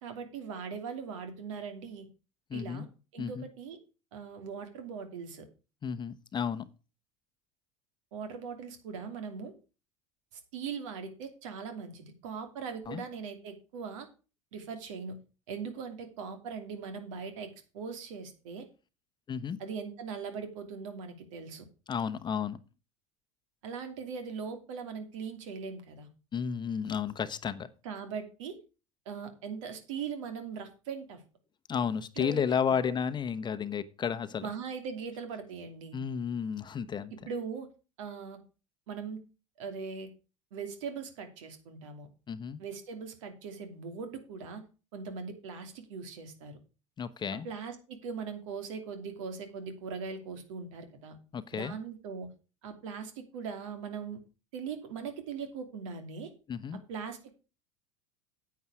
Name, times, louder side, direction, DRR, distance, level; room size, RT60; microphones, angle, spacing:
voice 1, 0.0-2.1 2.5-2.9 3.1-3.8 4.1-5.4 8.1-9.5 10.3-14.1 14.5-15.2 15.5-18.6 19.6-21.6 23.6-26.1 27.8-28.6 29.1-31.2 32.2-32.4 32.7-32.8 34.4-36.0 37.2-37.7 38.0-38.4 38.9-39.2 39.6-40.1 40.5-42.1 42.6-44.6 44.9-46.6 47.4-51.2 51.5-52.3 52.6-54.2 54.5-56.3 56.9-57.3, right 6 dB, 70° right, 7 dB, 2.7 m, -40 dB
voice 2, 2.5-2.9 3.2-3.5 5.8-6.7 12.9-13.0 19.3-19.6 21.9-22.6 26.3-27.7 31.7-34.5 35.9-37.1 42.3-42.6 47.0-47.5 51.3-51.7 56.5-56.8, left 7 dB, 25° left, 11 dB, 0.9 m, -32 dB
9.5 x 8.5 x 4.8 m, 0.32 s
hypercardioid pair, 90°, 17 cm